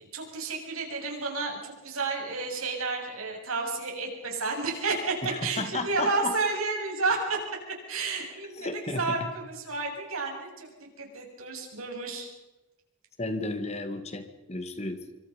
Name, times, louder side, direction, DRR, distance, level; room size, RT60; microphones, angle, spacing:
voice 1, 0.0-7.4 7.9-12.3, right 3 dB, 85° right, 1 dB, 7.2 m, -31 dB
voice 2, 5.2-6.3 8.6-9.2 13.2-15.0, left 2 dB, 30° left, 8 dB, 2.1 m, -33 dB
26.0 x 25.5 x 5.3 m, 1.0 s
head